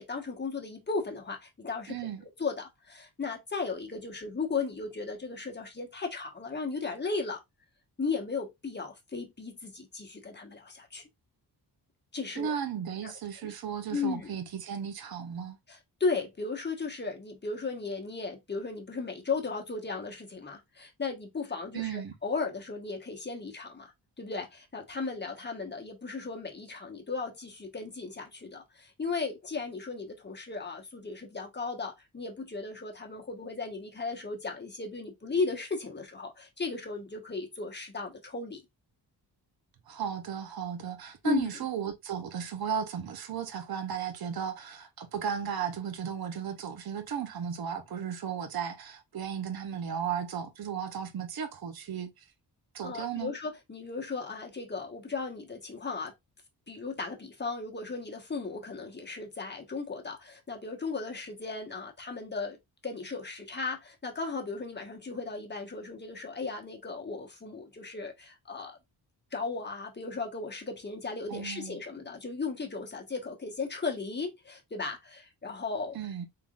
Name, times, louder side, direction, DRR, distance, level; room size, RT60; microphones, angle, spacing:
voice 1, 0.0-7.4 8.0-11.0 12.1-12.5 13.0-13.1 13.4-13.5 13.9-14.3 15.7-23.9 24.2-38.6 41.2-41.5 52.8-56.1 56.7-62.6 62.8-68.8 69.3-76.0, left 4 dB, 25° left, 1.1 m, -36 dB
voice 2, 1.9-2.3 12.3-15.6 21.7-22.1 39.9-52.3 52.7-53.3 71.3-71.8 75.9-76.3, right 7 dB, 60° right, 0.8 m, -35 dB
3.8 x 3.5 x 2.4 m
cardioid pair, 95°, 42 cm